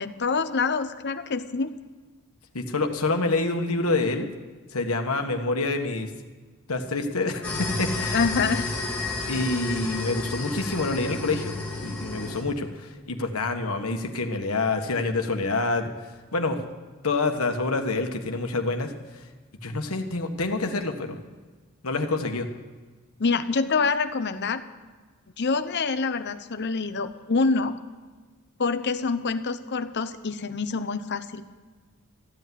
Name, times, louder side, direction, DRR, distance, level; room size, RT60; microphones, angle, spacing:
voice 1, 0.0-1.7 8.1-8.7 23.2-24.6 25.4-27.7 28.6-31.5, left 4 dB, 55° left, 10 dB, 0.8 m, -26 dB
voice 2, 2.5-4.3 4.7-6.1 6.7-8.2 9.3-11.5 11.8-15.9 16.3-16.6 17.0-19.2 19.6-21.2 21.8-22.5, left 3 dB, 85° left, 5 dB, 1.4 m, -27 dB
sound 1, 7.4-12.4, left 3 dB, 5° left, 3.0 m, -31 dB
14.5 x 8.3 x 9.3 m, 1.4 s
head